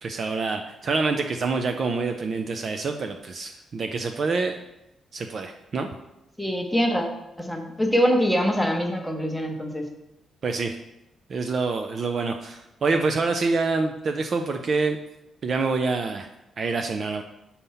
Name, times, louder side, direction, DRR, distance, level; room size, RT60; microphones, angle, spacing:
voice 1, 0.0-4.6 5.1-5.9 10.4-10.8 11.3-15.0 15.4-16.3 16.6-17.2, right 4 dB, 35° right, 5 dB, 0.4 m, -26 dB
voice 2, 6.4-9.8, equal, ahead, 2 dB, 0.8 m, -24 dB
6.8 x 4.2 x 5.5 m, 0.90 s
wide cardioid pair, 175°, 0 cm